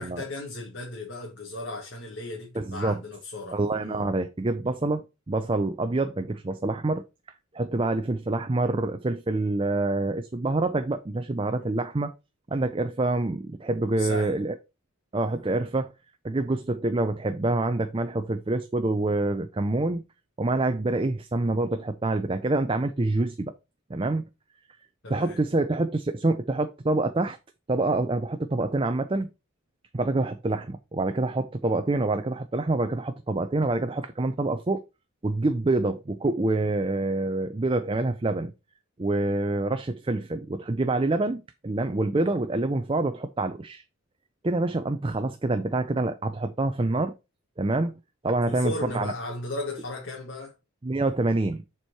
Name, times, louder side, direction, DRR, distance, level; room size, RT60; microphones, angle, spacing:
voice 1, 0.0-4.1 11.5-11.7 14.0-14.4 25.0-25.4 48.5-50.5, left 2 dB, 55° left, 1.8 m, -36 dB
voice 2, 2.5-3.0 3.5-7.0 7.5-12.1 12.5-14.6 15.1-15.9 16.2-20.0 20.4-23.6 23.9-24.2 25.1-27.4 27.7-29.3 29.9-34.8 35.2-38.5 39.0-43.8 44.4-47.1 47.6-47.9 48.2-49.1 50.8-51.6, right 2 dB, 25° right, 0.5 m, -26 dB
7.3 x 4.6 x 4.6 m
head